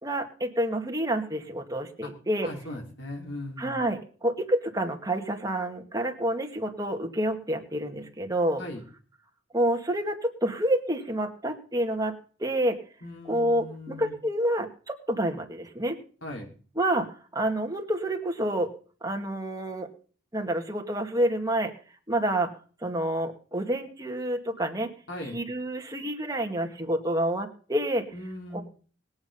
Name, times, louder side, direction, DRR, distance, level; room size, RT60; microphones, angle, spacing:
voice 1, 0.0-2.5 3.6-8.6 9.5-12.8 13.3-16.0 16.8-18.7 19.0-19.9 20.3-21.7 22.1-22.5 22.8-24.9 25.3-28.1 28.5-28.6, right 1 dB, 20° right, 3 dB, 2.2 m, -28 dB
voice 2, 2.4-3.8 8.6-8.8 13.0-14.1 16.2-16.5 25.1-25.4 28.1-28.6, left 1 dB, 70° left, 0 dB, 5.0 m, -38 dB
20.5 x 8.8 x 5.6 m, 0.41 s
head